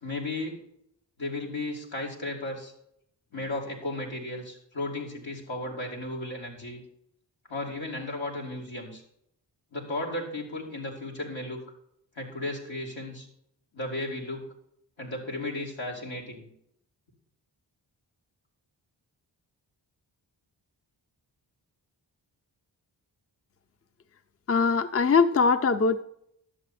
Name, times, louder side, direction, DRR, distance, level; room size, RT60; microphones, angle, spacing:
voice 1, 0.0-0.6 1.2-2.7 3.3-6.8 7.5-9.0 9.7-11.6 12.2-13.3 13.7-14.5 15.0-16.5, left 2 dB, 85° left, -2 dB, 2.8 m, -34 dB
voice 2, 24.5-26.0, left 5 dB, 30° left, 11 dB, 0.6 m, -22 dB
11.0 x 7.5 x 4.2 m, 0.73 s
cardioid pair, 60°, 45 cm